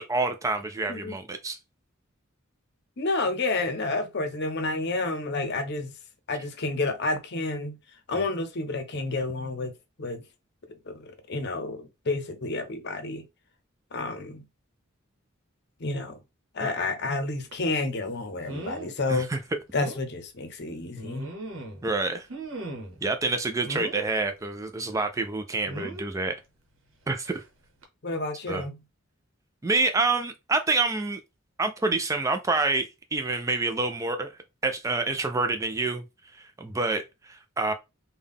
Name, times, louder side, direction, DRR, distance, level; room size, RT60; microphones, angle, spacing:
voice 1, 0.0-1.6 19.1-19.4 21.8-22.3 23.0-26.4 27.1-27.4 28.5-28.7 29.6-31.2 31.6-34.3 34.6-36.0 36.3-37.7, right 3 dB, 15° right, 0.3 m, -27 dB
voice 2, 3.0-5.9 6.3-7.8 8.1-9.7 10.0-10.2 10.9-13.2 13.9-14.4 15.8-16.2 16.5-19.3 19.7-21.3 28.0-28.8, left 3 dB, 55° left, 0.7 m, -30 dB
sound 1, 17.5-17.7 18.5-18.9 19.3-19.4 19.8-20.0 20.9-21.9 22.3-23.0 23.6-24.1 25.7-26.1 27.2-27.4 27.8-27.9, right 2 dB, 75° right, 1.0 m, -37 dB
3.6 x 2.2 x 3.5 m
head